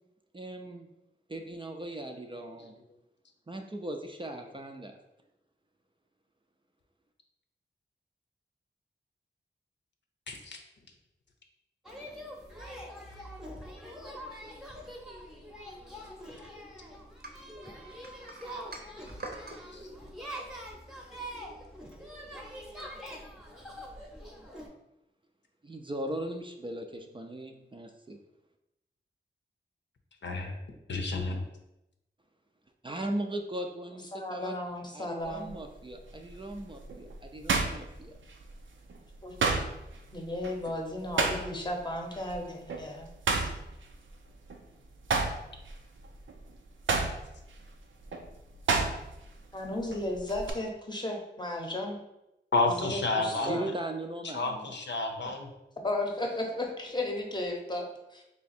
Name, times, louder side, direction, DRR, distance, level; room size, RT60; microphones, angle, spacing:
voice 1, 0.3-0.9 1.3-2.8 3.5-5.0 25.6-28.2 32.8-34.6 34.9-38.2 53.4-54.7, right 1 dB, 25° right, 3 dB, 0.4 m, -38 dB
voice 2, 10.3-10.6 19.7-19.8 30.2-30.5 30.9-31.4 52.5-53.6 54.3-55.5 57.7-57.8, left 3 dB, 70° left, 3 dB, 0.7 m, -30 dB
sound 1, 11.8-24.7, equal, ahead, 0.8 m, -44 dB
sound 2, 17.2-19.6, right 2 dB, 55° right, 0.7 m, -44 dB
voice 3, 34.1-35.5 39.2-39.4 40.1-43.1 49.5-52.0 52.6-53.7 55.8-58.2, left 1 dB, 25° left, 2 dB, 0.8 m, -34 dB
sound 3, 35.2-35.6 36.1-38.6 38.9-41.8 42.1-42.3 42.7-44.6 44.9-49.3 49.6-50.5, right 4 dB, 85° right, 0.5 m, -31 dB
3.4 x 2.8 x 4.2 m, 0.90 s
wide cardioid pair, 70°, 19 cm